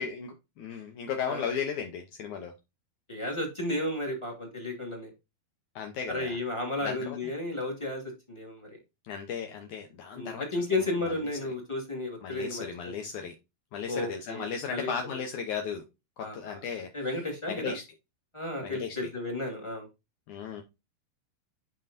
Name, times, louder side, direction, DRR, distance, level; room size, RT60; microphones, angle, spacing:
voice 1, 0.0-2.5 5.8-6.4 6.8-7.2 9.0-10.6 12.2-13.3 13.7-15.8 16.2-16.9 17.5-17.8 18.6-19.1 20.3-20.6, left 7 dB, 80° left, 1.7 m, -35 dB
voice 2, 3.1-5.1 6.1-8.0 8.3-8.7 10.1-12.9 13.9-15.2 16.2-16.6 16.9-17.7 18.3-19.9, left 2 dB, 15° left, 0.9 m, -33 dB
11.0 x 4.5 x 2.6 m
omnidirectional pair, 4.7 m